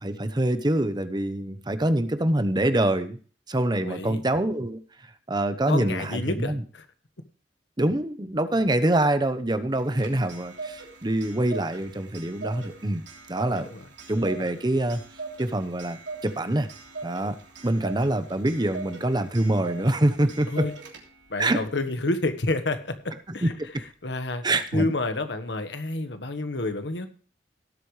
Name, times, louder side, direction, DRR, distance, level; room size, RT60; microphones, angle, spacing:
voice 1, 0.0-3.2 3.5-4.8 5.3-6.6 7.8-13.0 13.3-13.7 14.1-15.0 15.4-16.7 17.0-17.4 17.6-20.7 21.4-21.6 23.3-23.7 24.4-24.9, right 1 dB, 25° right, 11 dB, 0.9 m, -25 dB
voice 2, 3.8-4.2 5.7-6.8 13.6-13.8 20.5-20.7 21.3-23.5 24.0-24.4 24.7-27.1, left 2 dB, 85° left, 9 dB, 1.5 m, -29 dB
Clock, 9.7-21.3, right 4 dB, 85° right, 3.1 m, -41 dB
18.0 x 8.4 x 3.3 m, 0.41 s
head